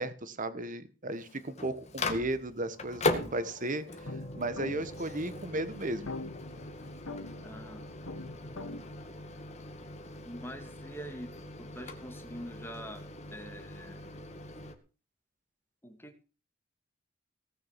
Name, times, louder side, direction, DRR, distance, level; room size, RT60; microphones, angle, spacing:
voice 1, 0.0-6.1, right 1 dB, 40° right, 13 dB, 1.5 m, -35 dB
Microwave oven, 1.1-14.8, left 2 dB, 35° left, 2.1 m, -40 dB
sound 1, 2.8-8.8, left 2 dB, 85° left, 1.9 m, -44 dB
voice 2, 7.4-7.9 10.2-11.3 11.6-14.0 15.8-16.2, equal, 10° left, 6 dB, 2.3 m, -45 dB
18.5 x 6.7 x 7.5 m, 0.35 s
head